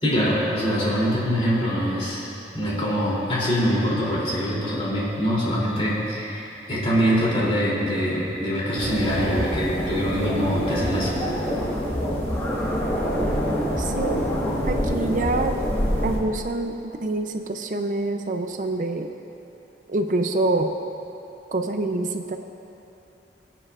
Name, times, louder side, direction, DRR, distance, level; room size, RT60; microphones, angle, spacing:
voice 1, 0.0-2.2 2.5-11.1, equal, 35° left, -6 dB, 2.9 m, -24 dB
sound 1, 8.7-16.2, equal, 15° left, 1.5 m, -26 dB
voice 2, 13.8-14.2 14.7-15.5 16.0-19.1 19.9-20.7 21.5-22.4, right 2 dB, 50° right, 5 dB, 0.5 m, -26 dB
23.5 x 8.8 x 2.4 m, 3.0 s
head